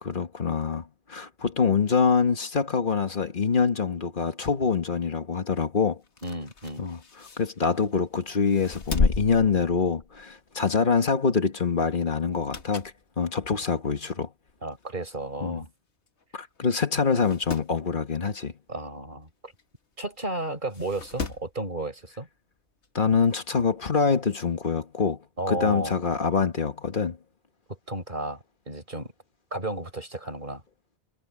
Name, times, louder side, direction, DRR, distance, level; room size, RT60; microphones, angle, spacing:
voice 1, 0.0-6.0 6.8-7.0 7.4-14.3 15.4-15.6 16.3-18.5 22.9-25.2 25.5-27.2, left 5 dB, 45° left, 1.6 m, -25 dB
sound 1, 6.0-8.0 8.5-10.3 10.7-10.9 12.2-13.0 13.5-13.6 14.5-14.6 14.8-14.9 15.1-15.2 16.1-16.2 16.6-16.7 17.0-17.7 19.6-19.7 20.7-21.5 22.8-22.9, left 4 dB, 70° left, 1.9 m, -32 dB
voice 2, 6.2-6.9 14.6-15.7 18.7-19.5 20.0-22.3 25.4-25.9 27.7-29.1 29.5-30.6, right 2 dB, 45° right, 5.2 m, -33 dB
omnidirectional pair, 1.2 m